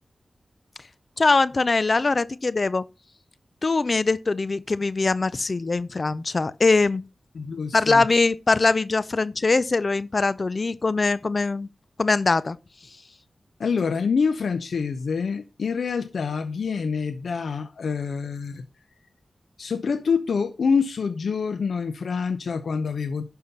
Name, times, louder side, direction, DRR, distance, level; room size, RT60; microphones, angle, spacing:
voice 1, 1.2-2.8 3.6-7.1 7.7-11.7 12.0-12.6, left 3 dB, 45° left, 0.6 m, -22 dB
voice 2, 7.4-8.0 13.6-18.6 19.6-23.2, left 5 dB, 85° left, 0.8 m, -26 dB
11.5 x 5.7 x 5.7 m
wide cardioid pair, 75°, 0 cm